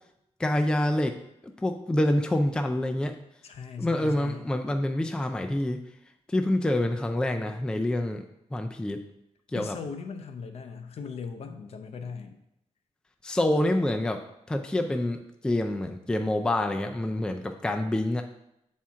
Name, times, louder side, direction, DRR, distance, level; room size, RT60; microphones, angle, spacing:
voice 1, 0.4-1.2 1.6-3.1 3.8-5.8 6.3-8.2 8.5-9.0 9.5-9.8 13.2-14.2 14.5-15.2 15.4-18.2, left 1 dB, 5° left, 5 dB, 0.3 m, -26 dB
voice 2, 3.4-4.4 9.5-12.4, left 5 dB, 60° left, 7 dB, 0.6 m, -38 dB
7.3 x 4.4 x 3.5 m, 0.82 s
wide cardioid pair, 165°, 12 cm